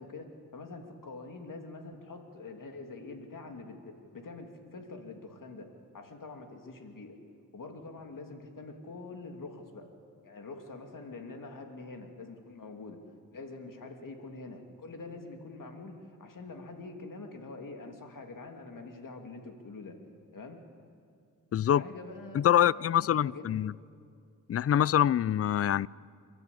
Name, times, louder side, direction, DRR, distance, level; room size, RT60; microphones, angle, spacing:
voice 1, 0.0-5.7 5.9-7.2 7.5-9.9 10.2-13.0 13.3-20.0 20.3-20.6 21.7-23.5, left 3 dB, 60° left, 2.8 m, -45 dB
voice 2, 21.5-21.8 22.3-23.7 24.5-25.9, left 10 dB, 40° left, 0.4 m, -25 dB
29.0 x 12.0 x 8.6 m
cardioid pair, 55°, 36 cm